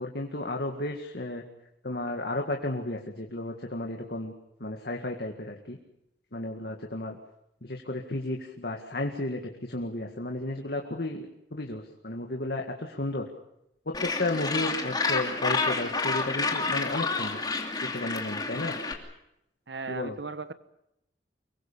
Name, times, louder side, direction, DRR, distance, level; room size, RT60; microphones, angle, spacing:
voice 1, 0.0-1.4 1.8-4.3 4.6-5.8 6.3-7.2 7.6-9.4 9.7-11.3 11.5-13.2 14.2-17.4 17.9-18.7 19.9-20.2, left 2 dB, 65° left, 2 dB, 2.1 m, -33 dB
Gull seagull, 13.9-18.9, left 3 dB, 25° left, 2.7 m, -29 dB
voice 2, 19.7-20.5, right 4 dB, 80° right, 12 dB, 1.2 m, -36 dB
25.0 x 22.5 x 6.9 m, 0.82 s
head